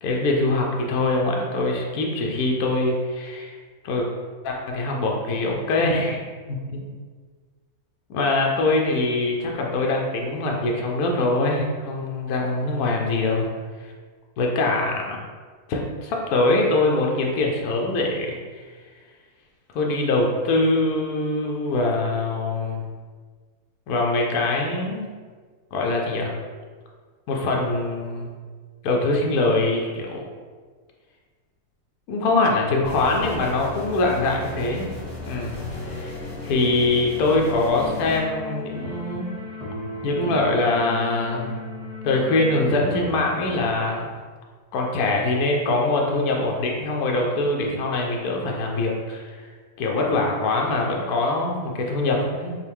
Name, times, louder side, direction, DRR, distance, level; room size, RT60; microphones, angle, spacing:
voice 1, 0.0-3.6 3.8-4.1 4.4-6.2 6.5-6.9 8.1-13.5 14.4-15.2 15.7-18.6 19.7-22.8 23.9-25.1 25.7-26.3 27.3-28.3 28.8-30.2 32.1-34.9 35.3-35.6 35.8-39.3 40.0-41.6 42.0-44.1 44.7-49.4 49.8-52.6, left 2 dB, 75° left, 0 dB, 1.1 m, -23 dB
sound 1, 32.8-38.2, left 3 dB, 30° left, 1.0 m, -35 dB
sound 2, 37.7-43.7, left 2 dB, 5° right, 0.7 m, -35 dB
5.4 x 2.1 x 3.4 m, 1.5 s
omnidirectional pair, 1.7 m